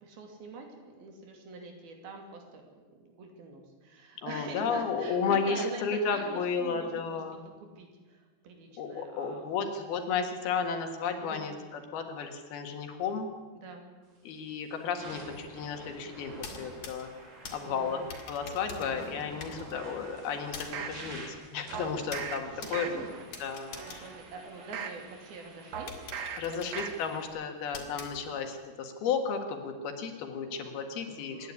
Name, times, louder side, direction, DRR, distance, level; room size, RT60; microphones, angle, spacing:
voice 1, 0.0-7.2 7.6-9.4 11.2-11.5 13.5-13.8 17.6-18.1 18.6-19.1 22.5-23.1 23.8-26.1 26.5-26.8 31.1-31.5, right 3 dB, 70° right, 3 dB, 4.6 m, -45 dB
voice 2, 4.2-7.5 8.8-13.3 14.2-17.1 17.5-22.9 23.4-24.1 26.4-31.5, left 5 dB, 75° left, 5 dB, 3.6 m, -33 dB
sound 1, 14.1-14.3 14.8-27.3, right 1 dB, 90° right, 6.1 m, -48 dB
sound 2, 16.3-25.1 25.5-25.6 25.9-28.7, left 5 dB, 55° left, 3.2 m, -47 dB
sound 3, 19.7-21.0 21.7-22.4 22.7-23.2 23.7-25.0 25.7-26.4 26.7-27.2 27.6-27.7, right 7 dB, 55° right, 2.0 m, -39 dB
25.5 x 10.5 x 9.7 m, 1.4 s
omnidirectional pair, 4.5 m